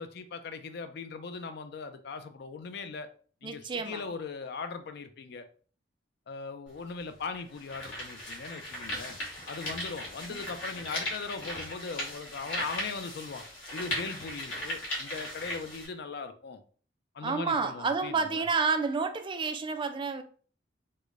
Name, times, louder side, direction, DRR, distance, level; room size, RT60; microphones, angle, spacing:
voice 1, 0.0-3.1 3.4-5.5 6.3-9.2 9.5-13.4 13.7-16.6 17.1-18.4, left 4 dB, 65° left, 9 dB, 0.4 m, -39 dB
voice 2, 3.4-4.0 10.3-10.4 17.2-20.2, right 4 dB, 25° right, 8 dB, 0.3 m, -30 dB
sound 1, 6.7-6.8 7.4-15.9, left 1 dB, 85° left, 1.4 m, -37 dB
4.7 x 2.1 x 2.4 m, 0.42 s
head